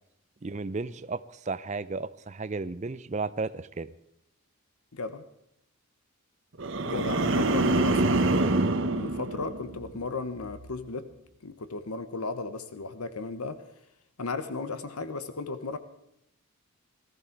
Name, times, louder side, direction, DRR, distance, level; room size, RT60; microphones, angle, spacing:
voice 1, 0.4-3.9 8.2-8.8, right 3 dB, 30° right, 15 dB, 0.5 m, -34 dB
voice 2, 4.9-5.2 6.8-8.4 8.9-11.1 11.4-13.6 14.2-15.8, left 3 dB, 85° left, 11 dB, 1.0 m, -35 dB
sound 1, 6.6-10.0 10.4-10.8, right 2 dB, 55° right, 0.9 m, -26 dB
19.5 x 14.0 x 4.6 m, 0.76 s
head